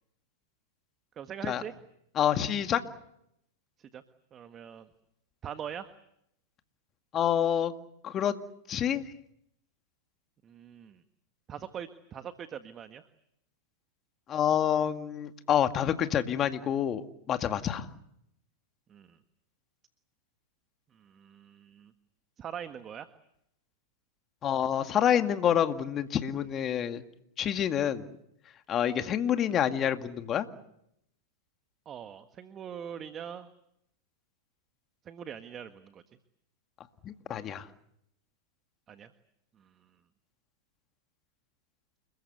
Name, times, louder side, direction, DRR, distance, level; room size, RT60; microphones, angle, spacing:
voice 1, 1.2-1.7 3.8-4.0 4.3-4.9 5.4-5.9 10.4-11.0 11.5-13.1 18.9-19.2 20.9-21.9 22.4-23.1 29.0-29.2 31.8-33.5 35.0-36.0 38.9-39.1 39.6-40.0, right 8 dB, 30° right, 9 dB, 1.5 m, -42 dB
voice 2, 2.2-2.8 7.1-7.7 8.0-8.3 8.7-9.1 14.3-17.9 24.4-27.0 27.4-28.1 28.7-30.5 37.0-37.7, left 9 dB, 35° left, 7 dB, 2.1 m, -27 dB
29.5 x 21.0 x 8.2 m, 0.76 s
hypercardioid pair, 105°, 0 cm